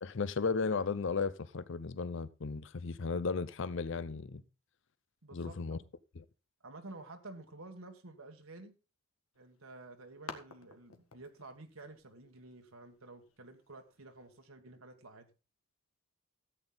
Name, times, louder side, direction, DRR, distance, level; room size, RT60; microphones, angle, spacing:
voice 1, 0.0-4.4 5.3-5.8 6.2-6.3, left 4 dB, 60° left, 0.5 m, -35 dB
voice 2, 5.2-5.8 6.6-8.7 9.4-15.3, right 2 dB, 80° right, 1.5 m, -51 dB
sound 1, 9.3-14.5, left 4 dB, 85° left, 1.7 m, -54 dB
14.0 x 9.0 x 3.9 m
head